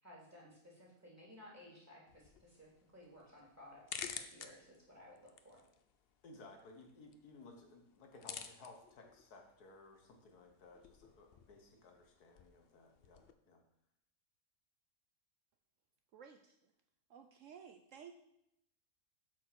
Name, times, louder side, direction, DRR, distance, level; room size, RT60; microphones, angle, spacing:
voice 1, 0.0-5.6, left 1 dB, 10° right, -5 dB, 2.8 m, -58 dB
sound 1, 2.1-13.3, left 7 dB, 60° left, 0.6 m, -53 dB
voice 2, 6.2-13.6, left 3 dB, 85° left, 3 dB, 1.8 m, -58 dB
voice 3, 16.1-16.6 17.1-18.1, right 7 dB, 65° right, 6 dB, 0.8 m, -55 dB
8.3 x 4.8 x 6.0 m, 0.79 s
omnidirectional pair, 1.6 m